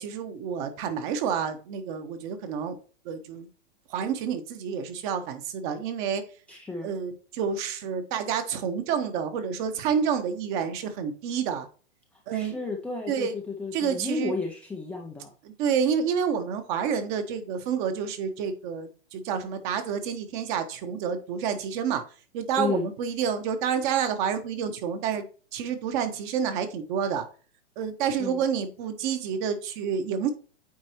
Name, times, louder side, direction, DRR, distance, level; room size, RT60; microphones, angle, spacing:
voice 1, 0.0-2.8 3.0-3.5 3.9-6.2 6.8-11.7 12.3-12.5 13.1-13.3 13.7-14.3 15.4-22.0 22.3-27.2 27.8-30.3, right 7 dB, 45° right, 8 dB, 1.2 m, -29 dB
voice 2, 6.5-6.9 12.3-15.3 22.6-22.9 28.2-28.4, left 4 dB, 5° left, -1 dB, 0.4 m, -32 dB
8.7 x 4.2 x 3.0 m, 0.38 s
hypercardioid pair, 120°, 35 cm